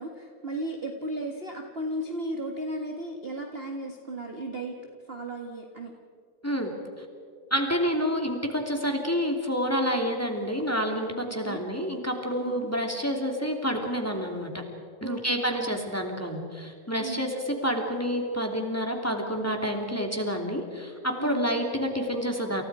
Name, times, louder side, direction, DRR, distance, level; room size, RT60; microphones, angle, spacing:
voice 1, 0.0-4.7 5.1-5.9 11.4-11.6 12.4-12.7 15.0-15.7 17.0-17.3 21.2-21.4, right 1 dB, 30° right, 2 dB, 1.2 m, -35 dB
voice 2, 7.5-14.6 15.0-22.6, equal, 5° left, 2 dB, 2.5 m, -28 dB
30.0 x 28.5 x 4.9 m, 2.2 s
omnidirectional pair, 3.6 m